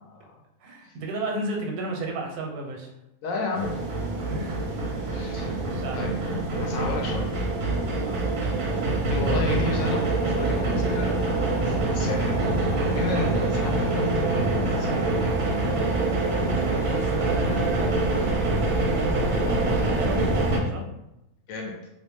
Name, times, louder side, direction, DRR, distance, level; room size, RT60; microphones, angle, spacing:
voice 1, 0.6-2.9 4.3-4.6 5.1-6.2 8.0-8.7 16.4-20.8, right 2 dB, 85° right, 1 dB, 1.1 m, -34 dB
voice 2, 3.2-3.7 5.1-6.1 6.6-7.3 9.1-14.9 21.5-21.7, left 3 dB, 70° left, 0 dB, 0.9 m, -33 dB
sound 1, 3.5-20.6, right 2 dB, 60° right, 0.6 m, -25 dB
2.7 x 2.1 x 2.9 m, 0.88 s
omnidirectional pair, 1.6 m